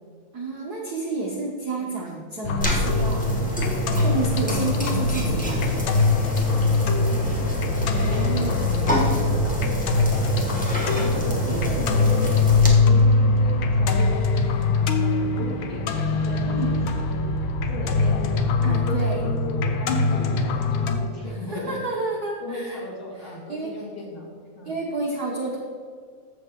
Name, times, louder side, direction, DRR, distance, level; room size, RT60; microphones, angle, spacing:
voice 1, 0.3-3.6 3.9-5.7 8.0-8.7 11.4-12.1 16.5-16.8 18.6-19.2 21.2-22.8 23.2-24.1 24.6-25.6, right 3 dB, 80° right, -1 dB, 0.8 m, -31 dB
sound 1, 2.4-21.0, left 3 dB, 85° left, 1.1 m, -22 dB
sound 2, 2.6-12.7, equal, 5° left, 0.6 m, -28 dB
voice 2, 6.5-7.5 8.1-21.8 22.4-24.3 24.5-24.8, left 2 dB, 50° left, -3 dB, 2.6 m, -37 dB
13.5 x 7.4 x 3.7 m, 2.1 s
omnidirectional pair, 3.3 m